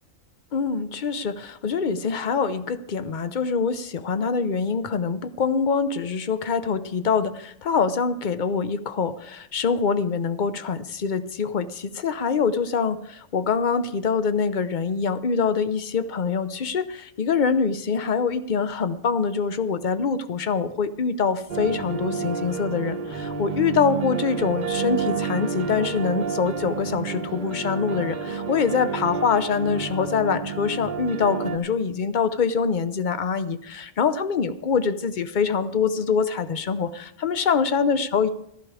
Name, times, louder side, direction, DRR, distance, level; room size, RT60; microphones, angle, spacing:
voice 1, 0.5-38.3, left 5 dB, 45° left, 12 dB, 0.7 m, -24 dB
sound 1, 21.5-31.6, right 5 dB, 40° right, 1.0 m, -30 dB
14.5 x 11.5 x 4.9 m, 0.75 s
omnidirectional pair, 1.4 m